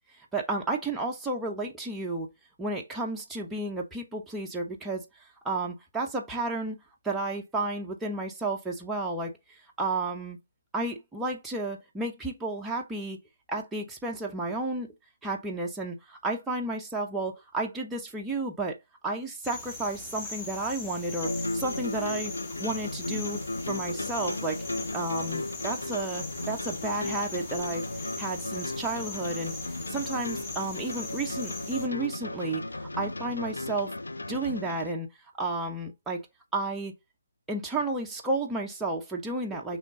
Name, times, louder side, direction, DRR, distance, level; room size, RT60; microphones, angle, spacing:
voice 1, 0.3-2.3 2.6-6.8 7.0-10.4 10.7-13.2 13.5-14.9 15.2-18.8 19.0-22.3 22.6-23.4 23.7-24.6 24.9-27.8 28.2-29.5 29.9-34.0 34.3-35.1 35.4-36.2 36.5-36.9 37.5-39.8, right 2 dB, 5° right, 0.5 m, -32 dB
sound 1, 19.4-31.9, left 3 dB, 15° left, 1.0 m, -41 dB
sound 2, 21.0-34.9, left 2 dB, 75° left, 0.4 m, -35 dB
3.6 x 3.0 x 3.6 m
figure-of-eight pair, 145°, 0 cm